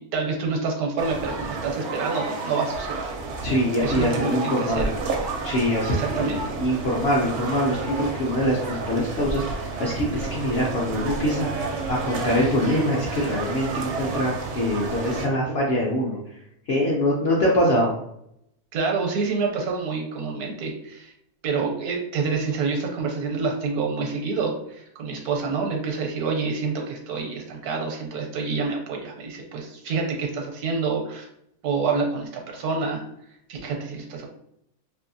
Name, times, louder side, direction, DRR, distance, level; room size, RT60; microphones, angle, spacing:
voice 1, 0.0-3.1 3.8-5.1 5.9-6.6 18.7-21.1 21.4-31.3 31.6-33.0 33.5-34.3, right 4 dB, 85° right, 1 dB, 1.2 m, -27 dB
sound 1, 1.0-15.3, right 3 dB, 65° right, 0.7 m, -31 dB
voice 2, 3.4-4.8 5.4-16.2 16.7-17.9, equal, 65° left, -4 dB, 0.6 m, -24 dB
2.7 x 2.6 x 2.6 m, 0.75 s
omnidirectional pair, 1.6 m